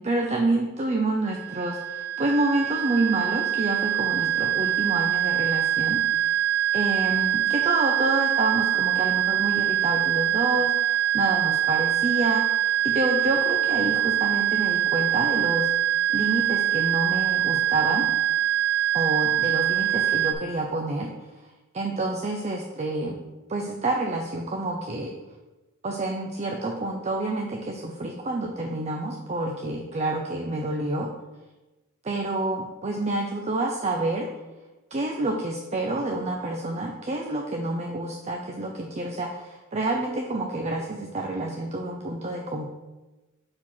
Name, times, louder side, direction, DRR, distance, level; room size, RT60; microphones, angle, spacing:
voice 1, 0.0-6.3 6.7-15.7 16.1-18.1 18.9-21.1 21.7-23.2 23.5-25.2 25.8-31.1 32.0-34.3 34.9-42.7, right 2 dB, 35° right, 1 dB, 0.5 m, -28 dB
sound 1, 1.3-20.3, right 12 dB, 80° right, 0.6 m, -24 dB
4.8 x 4.3 x 5.5 m, 1.1 s
head